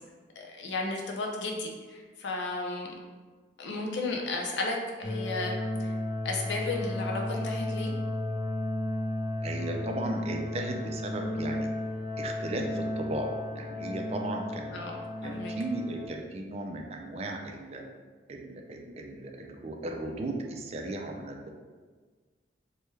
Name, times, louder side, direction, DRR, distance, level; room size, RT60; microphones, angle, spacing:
voice 1, 0.4-2.9 3.6-5.5 5.8-5.9 6.2-7.9 14.7-15.5, left 2 dB, 80° left, 1 dB, 0.5 m, -34 dB
sound 1, 5.0-16.1, left 1 dB, 25° left, 0.7 m, -33 dB
voice 2, 9.4-11.7 12.2-14.8 15.2-17.8 18.3-21.5, right 2 dB, 35° right, 2 dB, 0.3 m, -36 dB
3.2 x 2.2 x 3.1 m, 1.5 s
head